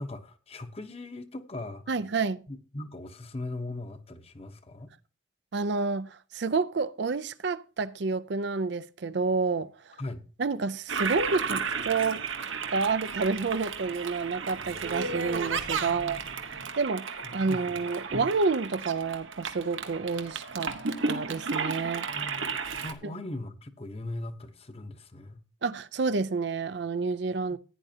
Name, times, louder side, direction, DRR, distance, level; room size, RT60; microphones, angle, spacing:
voice 1, 0.0-1.9 2.5-4.9 10.0-10.2 15.8-16.2 16.5-16.6 17.2-17.8 22.1-25.4 27.5-27.6, left 2 dB, 30° left, 0.9 m, -39 dB
voice 2, 1.9-2.4 5.5-9.7 10.4-12.2 12.7-16.2 16.4-20.7 21.1-22.1 23.0-23.1 25.6-27.6, right 4 dB, 60° right, 0.5 m, -29 dB
Toilet flush, 10.9-22.9, right 5 dB, 85° right, 1.3 m, -33 dB
15.5 x 9.9 x 2.8 m
head